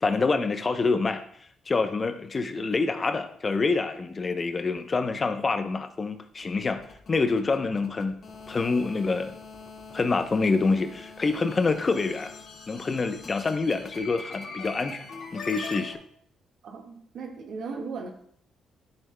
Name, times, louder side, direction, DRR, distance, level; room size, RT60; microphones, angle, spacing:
voice 1, 0.0-1.2 1.7-6.8 7.1-8.2 8.5-9.3 9.9-12.3 12.7-16.0, left 4 dB, 35° left, 8 dB, 0.7 m, -26 dB
sound 1, 6.4-16.0, left 4 dB, 55° left, 1.8 m, -43 dB
voice 2, 16.6-18.1, right 4 dB, 65° right, 2 dB, 1.5 m, -37 dB
12.5 x 7.2 x 2.2 m, 0.63 s
cardioid pair, 90°, 0 cm